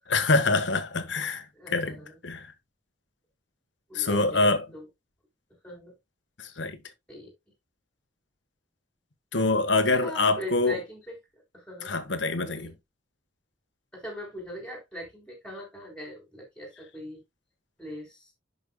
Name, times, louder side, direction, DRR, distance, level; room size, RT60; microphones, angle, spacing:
voice 1, 0.1-1.4 1.7-2.0 2.2-2.5 3.9-4.6 6.4-6.8 9.3-10.8 11.8-12.7, left 3 dB, 80° left, 1.3 m, -25 dB
voice 2, 1.5-2.2 3.9-4.9 5.6-5.9 7.1-7.3 9.8-11.9 12.4-12.7 13.9-17.2 17.8-18.3, equal, 5° left, 3.6 m, -41 dB
10.5 x 5.6 x 2.2 m
head